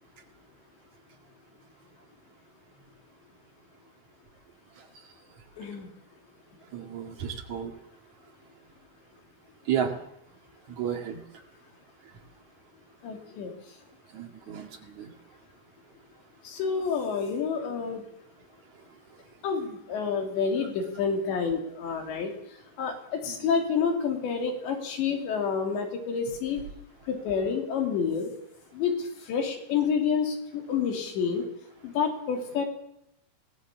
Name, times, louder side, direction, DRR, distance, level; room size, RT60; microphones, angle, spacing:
voice 1, 5.6-5.9 13.0-13.5 16.4-18.0 19.4-22.3 22.8-26.6 27.1-28.3 28.7-31.4 31.8-32.7, left 6 dB, 65° left, 3 dB, 4.9 m, -28 dB
voice 2, 6.7-7.7 9.7-9.9 10.7-11.2 14.1-15.1 23.3-23.4, right 8 dB, 50° right, 4 dB, 2.6 m, -32 dB
24.0 x 18.5 x 7.3 m, 0.80 s
omnidirectional pair, 5.7 m